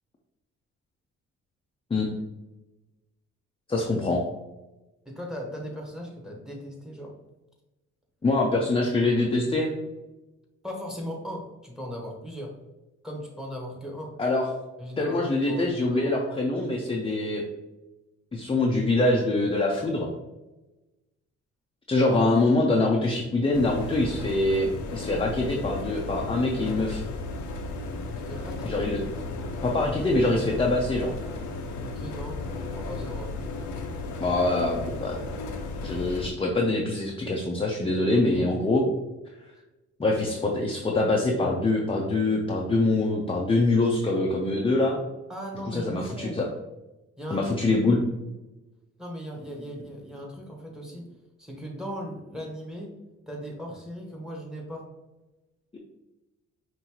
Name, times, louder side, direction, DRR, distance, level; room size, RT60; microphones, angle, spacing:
voice 1, 3.7-4.3 8.2-9.7 14.2-14.5 15.0-17.4 18.3-20.1 21.9-27.0 28.6-29.0 29.6-31.2 34.2-35.2 35.8-38.8 40.0-45.0 45.7-46.5 47.3-48.0, left 2 dB, 20° left, -1 dB, 0.6 m, -24 dB
voice 2, 5.0-7.1 10.6-12.5 13.0-14.1 14.8-16.1 28.3-28.9 31.8-33.3 38.1-38.5 45.3-46.4 47.2-47.4 49.0-51.1 51.4-52.9 53.3-54.9, equal, ahead, 0 dB, 1.2 m, -38 dB
sound 1, 23.5-36.3, left 3 dB, 70° left, 0.7 m, -35 dB
5.5 x 2.7 x 3.0 m, 1.0 s
cardioid pair, 90°, 30 cm